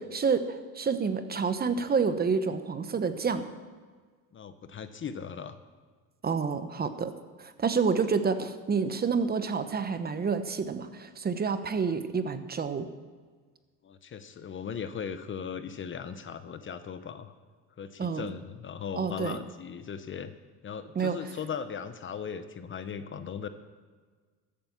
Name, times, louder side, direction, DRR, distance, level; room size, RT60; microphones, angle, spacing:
voice 1, 0.0-3.4 6.2-7.1 7.4-12.9 18.0-18.3 19.0-19.4 20.9-21.2, right 5 dB, 25° right, 10 dB, 0.9 m, -28 dB
voice 2, 4.3-5.6 13.8-17.3 17.8-20.3 20.6-23.5, left 7 dB, 35° left, 11 dB, 0.9 m, -38 dB
14.0 x 8.6 x 7.4 m, 1.5 s
cardioid pair, 110°, 37 cm